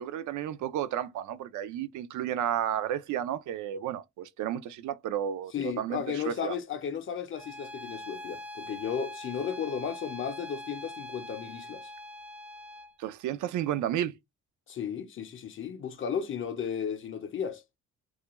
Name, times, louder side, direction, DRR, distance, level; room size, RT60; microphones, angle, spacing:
voice 1, 0.0-6.5 13.0-14.1, right 10 dB, 75° right, 0.5 m, -32 dB
voice 2, 5.5-11.9 14.7-17.6, left 7 dB, 45° left, 0.6 m, -34 dB
Bowed string instrument, 7.3-13.0, left 1 dB, 5° right, 0.4 m, -43 dB
2.4 x 2.2 x 2.9 m
cardioid pair, 90°, 30 cm